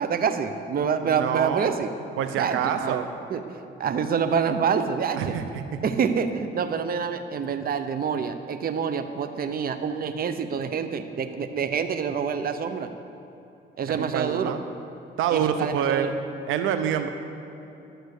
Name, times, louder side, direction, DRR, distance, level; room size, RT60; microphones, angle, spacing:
voice 1, 0.0-1.9 2.4-3.0 3.3-3.4 3.8-5.4 5.8-12.9 13.8-14.5 15.3-16.1, right 6 dB, 50° right, 9 dB, 0.8 m, -27 dB
voice 2, 1.0-1.7 2.2-3.1 5.2-5.5 13.9-14.6 15.2-16.1 16.5-17.1, right 9 dB, 90° right, 8 dB, 0.7 m, -26 dB
12.0 x 7.8 x 6.5 m, 2.9 s
cardioid pair, 90°, 20 cm